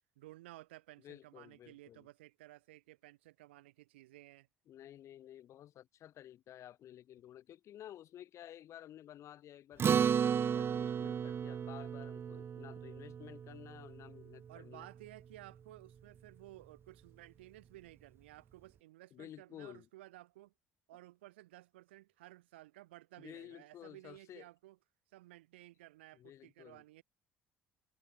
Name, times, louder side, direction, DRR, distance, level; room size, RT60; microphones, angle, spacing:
voice 1, 0.2-4.5 14.5-20.5 20.9-24.8 25.1-27.0, right 17 dB, 75° right, 7.9 m, -56 dB
voice 2, 1.0-2.1 4.7-14.9 19.1-19.9 23.2-24.5 26.1-26.8, left 11 dB, 55° left, 7.7 m, -53 dB
Acoustic guitar, 9.8-14.5, right 8 dB, 40° right, 0.8 m, -34 dB
figure-of-eight pair, 50°, 6 cm